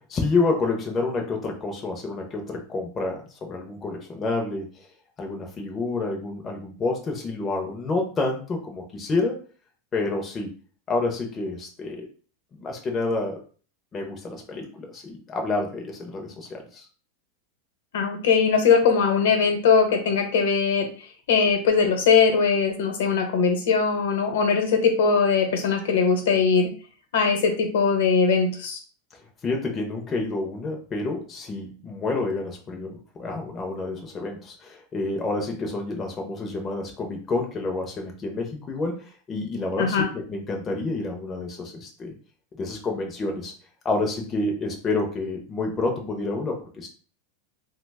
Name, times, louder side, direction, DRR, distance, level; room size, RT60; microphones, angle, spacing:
voice 1, 0.0-4.7 5.2-9.4 9.9-10.5 10.9-12.0 12.5-13.4 13.9-16.8 29.4-42.1 42.6-43.5 43.8-46.9, left 3 dB, 15° left, 1 dB, 0.4 m, -29 dB
voice 2, 17.9-20.9 21.3-26.7 27.1-28.8 39.8-40.1, left 5 dB, 80° left, 5 dB, 0.7 m, -20 dB
2.9 x 2.0 x 3.3 m, 0.40 s
supercardioid pair, 175°, 0 cm